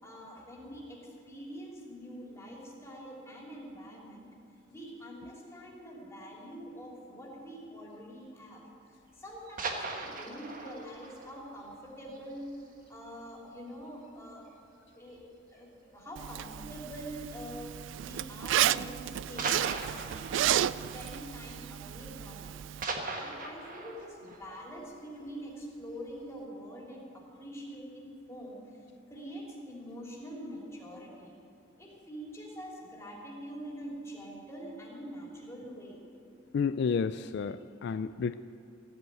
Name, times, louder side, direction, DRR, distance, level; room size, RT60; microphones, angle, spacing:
voice 1, 0.0-4.3 4.7-8.6 8.9-12.5 12.9-14.5 15.0-17.8 18.0-22.5 23.2-28.7 29.1-31.3 31.8-36.0, equal, 15° left, -3 dB, 3.1 m, -45 dB
sound 1, 9.3-12.9 13.2-13.3 13.7-13.9 14.2-14.3 15.1-15.6 16.8-17.0 17.9-18.0 19.4-22.2 22.4-25.6 26.0-26.1, right 3 dB, 45° right, 1.4 m, -40 dB
Zipper (clothing), 16.2-22.8, right 11 dB, 70° right, 0.3 m, -32 dB
voice 2, 36.5-38.3, left 6 dB, 65° left, 12 dB, 0.3 m, -31 dB
15.0 x 7.9 x 9.2 m, 2.6 s
head